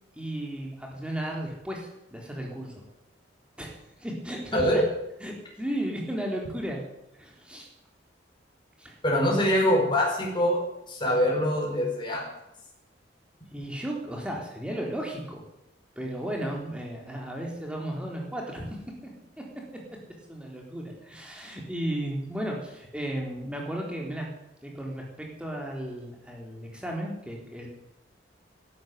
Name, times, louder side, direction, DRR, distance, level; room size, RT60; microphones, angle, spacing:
voice 1, 0.1-2.8 3.6-4.8 5.2-6.8 7.1-7.7 8.8-9.0 13.5-15.4 16.0-19.1 19.4-19.5 20.3-24.3 24.6-27.7, right 1 dB, 5° right, -1 dB, 3.9 m, -34 dB
voice 2, 4.5-4.8 9.0-10.6 10.9-12.2, equal, 25° left, -2 dB, 4.9 m, -24 dB
12.5 x 12.0 x 9.4 m, 0.87 s
head